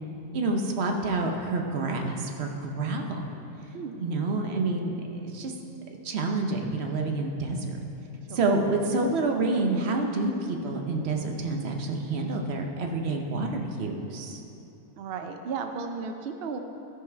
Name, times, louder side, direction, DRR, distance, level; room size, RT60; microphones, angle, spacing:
voice 1, 0.3-3.2 4.0-5.5 6.0-7.8 8.3-14.4, right 2 dB, 50° right, 3 dB, 0.9 m, -28 dB
voice 2, 3.7-4.1 8.3-8.6 15.0-16.6, right 5 dB, 80° right, 6 dB, 0.5 m, -35 dB
13.0 x 5.3 x 4.5 m, 2.9 s
omnidirectional pair, 1.6 m